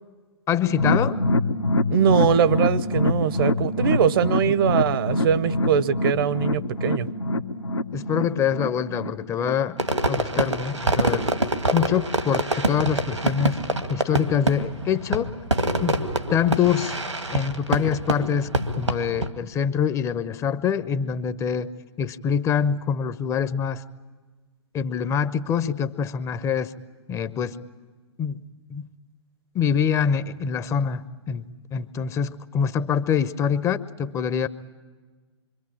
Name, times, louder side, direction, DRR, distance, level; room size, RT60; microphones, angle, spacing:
voice 1, 0.5-1.2 7.9-9.8 10.1-11.2 11.7-13.6 13.9-15.3 15.8-17.0 17.3-21.7 22.0-23.8 24.7-26.7 27.1-27.6 28.2-28.4 28.7-28.9 29.5-31.5 31.7-34.5, left 7 dB, 20° left, 14 dB, 0.8 m, -25 dB
sound 1, 0.7-10.0 10.3-10.4 10.8-10.9, left 1 dB, 75° left, 1.4 m, -25 dB
voice 2, 1.9-7.1, right 8 dB, 50° right, 17 dB, 0.9 m, -22 dB
Fireworks, 9.8-19.3, right 2 dB, 85° right, 2.1 m, -25 dB
26.0 x 24.5 x 8.8 m, 1.4 s
figure-of-eight pair, 110°, 15 cm